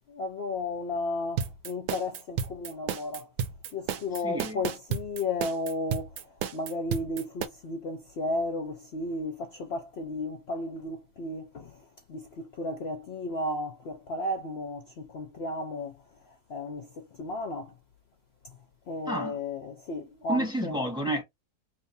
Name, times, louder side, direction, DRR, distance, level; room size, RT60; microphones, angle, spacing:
voice 1, 0.1-3.3 3.7-16.0 16.5-17.7 18.9-20.8, left 2 dB, 60° left, 0.7 m, -34 dB
sound 1, 1.4-7.5, right 8 dB, 80° right, 1.1 m, -32 dB
voice 2, 4.2-4.6 19.1-19.4 20.3-21.2, right 1 dB, 5° right, 0.9 m, -30 dB
2.9 x 2.4 x 4.1 m
omnidirectional pair, 1.6 m